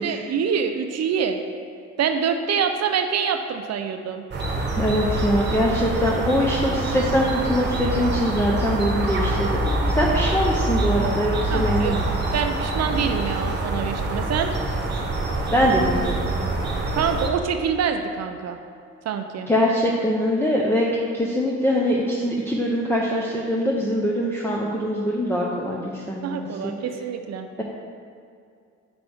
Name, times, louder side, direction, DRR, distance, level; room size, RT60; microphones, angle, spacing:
voice 1, 0.0-1.4 2.0-4.2 11.5-12.0 12.3-14.5 16.9-18.6 19.0-19.5 26.2-27.5, right 7 dB, 60° right, 7 dB, 0.6 m, -25 dB
sound 1, 4.3-17.3, right 2 dB, 35° right, 1.2 m, -25 dB
voice 2, 4.8-12.0 15.5-16.4 19.5-26.7, equal, 10° left, -3 dB, 0.8 m, -23 dB
7.8 x 5.9 x 3.5 m, 2.4 s
cardioid pair, 90°, 30 cm